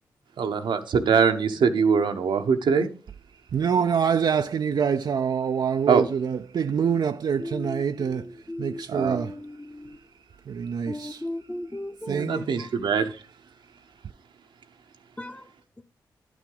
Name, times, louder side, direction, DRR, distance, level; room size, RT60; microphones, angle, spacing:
voice 1, 0.4-2.9 5.9-6.0 8.9-9.2 12.1-13.2, right 6 dB, 70° right, 0.9 m, -22 dB
voice 2, 3.5-9.4 10.5-11.2 12.1-12.4, right 7 dB, 55° right, 0.4 m, -26 dB
voice 3, 7.4-10.0 10.9-12.7 15.2-15.5 15.8-15.9, left 1 dB, 15° left, 0.8 m, -37 dB
10.5 x 6.0 x 3.8 m
supercardioid pair, 45°, 8 cm